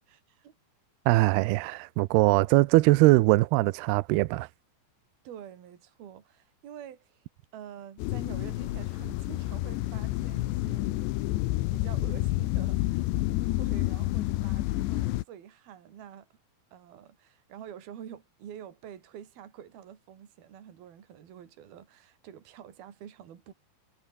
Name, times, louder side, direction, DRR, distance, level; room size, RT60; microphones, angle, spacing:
voice 1, 1.1-4.5, right 20 dB, 85° right, 2.3 m, -21 dB
voice 2, 5.2-7.2 7.5-11.0 11.7-16.3 16.7-23.5, right 9 dB, 55° right, 4.5 m, -47 dB
sound 1, 8.0-15.2, left 17 dB, 75° left, 3.0 m, -29 dB
omnidirectional pair, 5.4 m